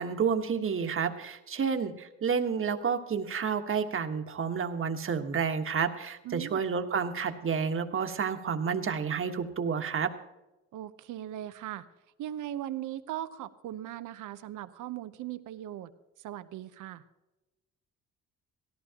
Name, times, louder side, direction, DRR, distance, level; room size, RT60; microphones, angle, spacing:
voice 1, 0.0-10.1, right 6 dB, 45° right, 6 dB, 1.4 m, -30 dB
voice 2, 6.2-6.6 10.7-11.9 12.2-15.9 16.2-17.0, right 12 dB, 80° right, 12 dB, 0.9 m, -39 dB
17.5 x 14.0 x 2.9 m, 1.0 s
cardioid pair, 90°, 30 cm